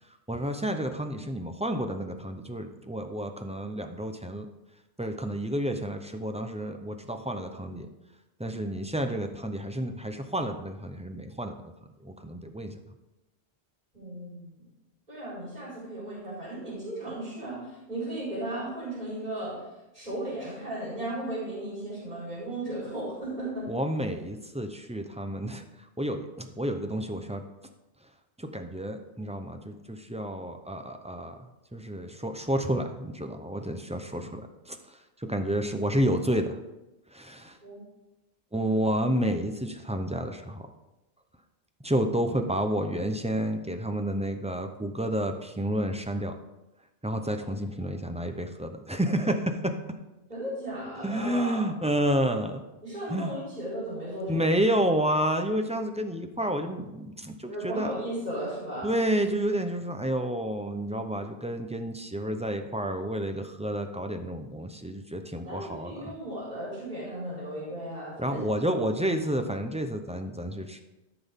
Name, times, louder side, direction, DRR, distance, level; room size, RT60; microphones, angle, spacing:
voice 1, 0.3-4.5 5.0-7.9 8.4-11.6 12.0-12.8 23.7-25.6 26.0-27.4 28.4-34.8 35.2-36.6 37.1-37.6 38.5-40.7 41.8-46.3 47.0-49.7 51.0-52.6 53.1-53.3 54.3-57.9 58.8-66.2 68.2-70.8, right 1 dB, 10° right, 6 dB, 0.5 m, -30 dB
voice 2, 13.9-14.6 15.1-19.6 19.9-23.7 37.6-37.8 50.3-51.7 52.8-54.5 57.5-59.0 65.3-68.4, right 1 dB, 45° right, -7 dB, 4.0 m, -35 dB
13.5 x 6.0 x 3.6 m, 0.99 s
omnidirectional pair, 1.1 m